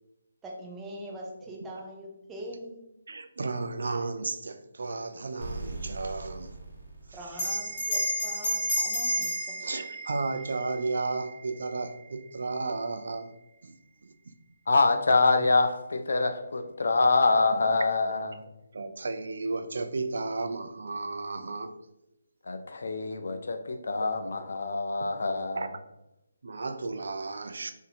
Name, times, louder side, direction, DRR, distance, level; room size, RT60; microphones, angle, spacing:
voice 1, 0.4-2.8 7.1-9.6, right 1 dB, 10° right, 0.5 m, -42 dB
voice 2, 3.1-6.6 7.1-7.2 9.6-13.3 13.6-13.7 14.0-14.3 18.7-21.8 25.5-25.7 26.4-27.7, right 3 dB, 65° right, 0.4 m, -33 dB
sound 1, 5.4-8.1, right 2 dB, 45° right, 1.3 m, -40 dB
Bell, 7.3-12.2, equal, 25° left, 1.1 m, -32 dB
voice 3, 14.7-18.4 22.4-25.6, left 3 dB, 65° left, 0.4 m, -25 dB
2.6 x 2.6 x 4.1 m
hypercardioid pair, 170°, 0 cm